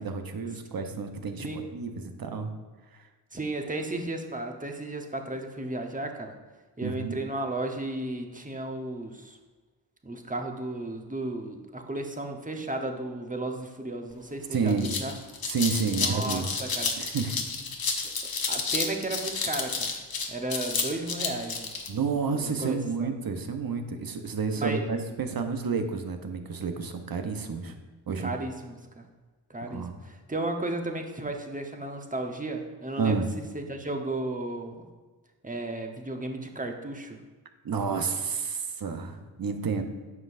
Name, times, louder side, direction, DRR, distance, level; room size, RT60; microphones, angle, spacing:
voice 1, 0.0-2.5 2.9-3.1 6.8-7.2 14.5-14.9 15.5-16.5 17.0-17.4 21.9-27.7 28.1-28.3 29.6-30.0 33.0-33.3 37.6-39.8, right 5 dB, 50° right, 6 dB, 1.0 m, -30 dB
voice 2, 3.3-6.4 6.8-9.4 10.0-15.1 16.0-17.0 18.2-20.0 20.3-21.7 22.3-23.1 24.6-24.8 28.2-29.0 29.5-33.2 33.5-34.9 35.4-37.2, right 2 dB, 15° right, 3 dB, 1.1 m, -34 dB
sound 1, 14.1-14.2 14.5-21.9, left 4 dB, 50° left, 1.1 m, -31 dB
9.4 x 5.4 x 2.6 m, 1.3 s
supercardioid pair, 45°, 47 cm